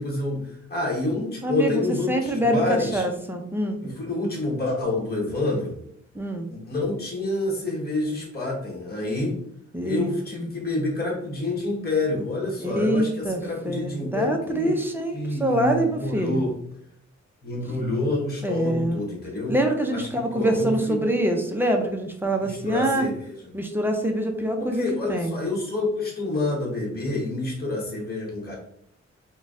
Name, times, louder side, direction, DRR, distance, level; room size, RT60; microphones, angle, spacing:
voice 1, 0.0-3.0 3.8-5.8 6.5-9.4 9.8-14.8 15.1-16.5 17.4-19.6 19.9-21.1 22.4-23.3 24.6-28.6, left 2 dB, 30° left, -2 dB, 1.0 m, -28 dB
voice 2, 1.4-1.8 2.1-3.8 6.1-6.5 9.7-10.1 12.6-16.4 18.4-19.0 19.5-23.1 23.5-24.8 25.1-25.4, right 1 dB, 5° right, 3 dB, 0.5 m, -25 dB
3.8 x 2.2 x 3.5 m, 0.69 s
wide cardioid pair, 130°, 29 cm